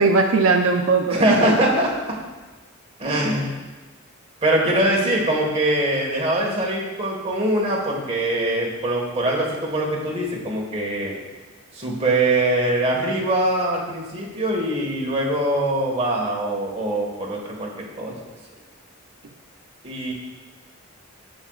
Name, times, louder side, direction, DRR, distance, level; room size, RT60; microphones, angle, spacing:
voice 1, 0.0-1.2, right 4 dB, 80° right, 3 dB, 0.6 m, -18 dB
voice 2, 1.1-2.2 3.0-3.6 4.4-11.1 11.7-18.1 19.8-20.1, right 1 dB, 30° right, -2 dB, 1.5 m, -22 dB
14.0 x 5.4 x 2.4 m, 1.2 s
head